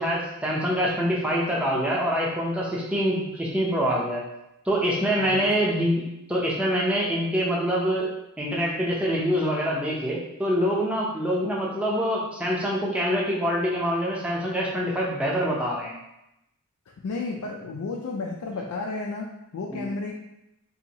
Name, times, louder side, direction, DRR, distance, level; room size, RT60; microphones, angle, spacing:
voice 1, 0.0-4.2 4.7-6.0 6.3-8.1 8.4-15.9 19.7-19.9, equal, 5° right, -4 dB, 0.6 m, -25 dB
voice 2, 5.2-5.5 17.0-20.1, left 3 dB, 85° left, -1 dB, 0.4 m, -32 dB
2.7 x 2.7 x 4.0 m, 0.86 s
head